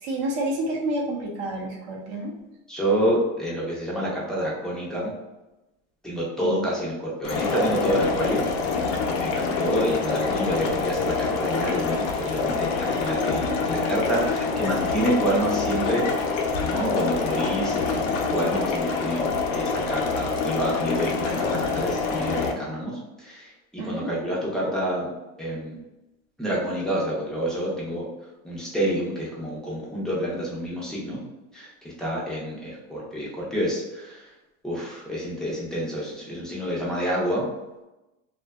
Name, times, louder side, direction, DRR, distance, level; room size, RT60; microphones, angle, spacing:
voice 1, 0.0-2.3 6.4-6.6 23.8-24.1, right 1 dB, 55° right, -1 dB, 0.6 m, -29 dB
voice 2, 2.7-5.1 6.0-8.4 9.2-16.1 16.7-19.2 19.5-25.1 25.4-25.8 26.4-28.1 28.4-31.2 31.5-34.3 34.6-37.5, equal, ahead, -7 dB, 0.4 m, -28 dB
sound 1, 7.2-22.5, left 4 dB, 80° left, 0.6 m, -26 dB
2.6 x 2.2 x 2.3 m, 1.0 s
supercardioid pair, 135°, 39 cm